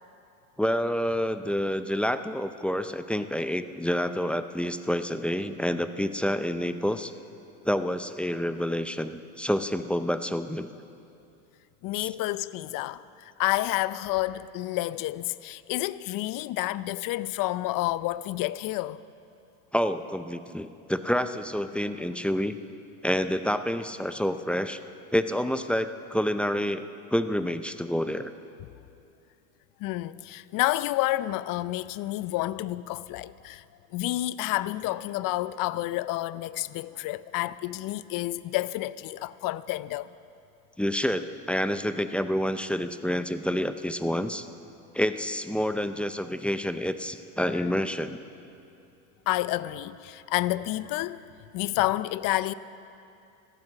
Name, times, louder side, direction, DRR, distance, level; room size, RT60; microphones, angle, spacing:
voice 1, 0.6-7.1 7.6-10.7 12.0-12.1 19.7-22.6 23.0-24.8 25.1-28.3 40.8-44.5 44.9-48.2, equal, 5° left, 0.5 m, -28 dB
voice 2, 11.8-19.0 29.8-33.6 33.9-40.1 47.5-47.6 49.3-51.2 51.5-52.5, left 16 dB, 50° left, 0.6 m, -29 dB
14.5 x 12.5 x 7.5 m
supercardioid pair, 95°, 43 cm